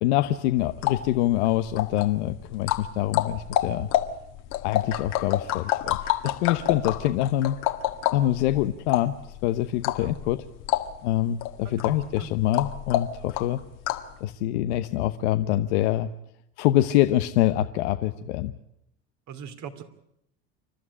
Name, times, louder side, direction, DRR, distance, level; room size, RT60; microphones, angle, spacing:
voice 1, 0.0-3.9 4.6-7.6 8.1-9.1 9.4-10.4 11.0-13.6 14.2-16.1 16.6-18.5, left 13 dB, 85° left, 9 dB, 1.0 m, -25 dB
sound 1, 0.6-14.2, left 12 dB, 65° left, 1.8 m, -29 dB
voice 2, 11.6-12.3 19.3-19.8, right 7 dB, 55° right, 8 dB, 2.9 m, -41 dB
28.5 x 12.5 x 9.9 m, 0.78 s
supercardioid pair, 90°, 34 cm